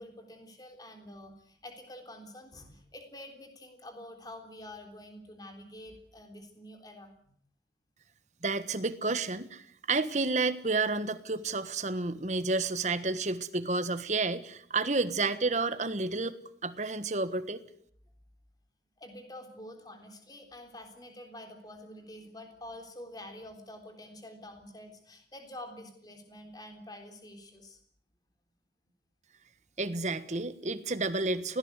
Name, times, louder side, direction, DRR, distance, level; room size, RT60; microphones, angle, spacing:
voice 1, 0.0-7.4 19.0-27.8, left 1 dB, 20° left, 5 dB, 3.6 m, -47 dB
voice 2, 8.4-16.3 16.6-17.6 29.8-31.6, right 3 dB, 40° right, 12 dB, 1.4 m, -30 dB
25.0 x 17.5 x 8.2 m, 0.65 s
head